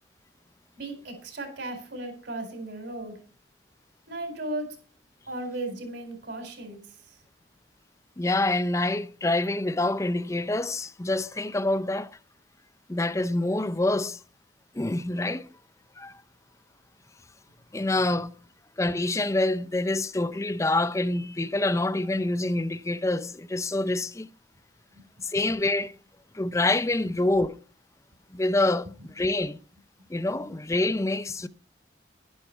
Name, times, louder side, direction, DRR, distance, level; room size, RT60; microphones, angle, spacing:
voice 1, 0.7-3.2 4.1-4.7 5.3-7.2 24.9-25.0, right 2 dB, 65° right, 4.4 m, -36 dB
voice 2, 8.2-12.1 12.9-14.2 14.7-15.5 16.0-16.2 17.7-18.3 18.8-24.3 25.2-25.9 26.3-27.6 28.3-29.6 30.1-31.5, left 2 dB, 15° left, 0.4 m, -26 dB
11.0 x 11.0 x 4.5 m
head